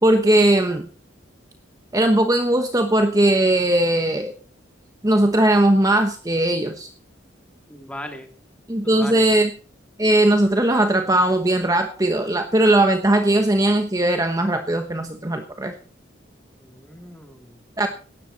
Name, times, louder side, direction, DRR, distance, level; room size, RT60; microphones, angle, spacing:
voice 1, 0.0-0.9 1.9-4.3 5.0-6.9 8.7-9.5 10.0-15.7 17.8-17.9, right 1 dB, 20° right, 6 dB, 1.1 m, -19 dB
voice 2, 7.7-8.3 8.8-9.3 16.6-17.6, left 1 dB, 5° left, 5 dB, 2.7 m, -38 dB
17.5 x 13.5 x 4.2 m, 0.40 s
head